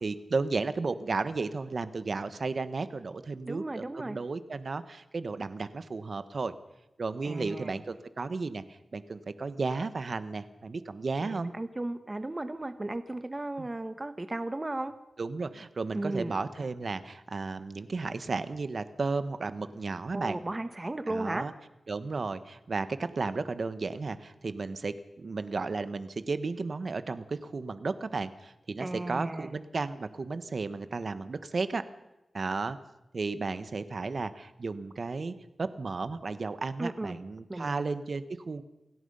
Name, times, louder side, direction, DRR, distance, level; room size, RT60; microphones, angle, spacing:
voice 1, 0.0-6.5 7.0-11.5 13.6-13.7 15.2-20.4 21.1-21.5 21.9-31.8 32.3-32.8 33.1-38.6, right 4 dB, 55° right, 12 dB, 1.4 m, -34 dB
voice 2, 3.4-4.2 7.2-7.7 11.2-14.9 15.9-16.4 20.1-21.5 28.8-29.5 36.8-37.2 37.5-37.8, right 2 dB, 25° right, 10 dB, 1.3 m, -35 dB
28.5 x 17.0 x 5.6 m, 0.92 s
wide cardioid pair, 80°, 0 cm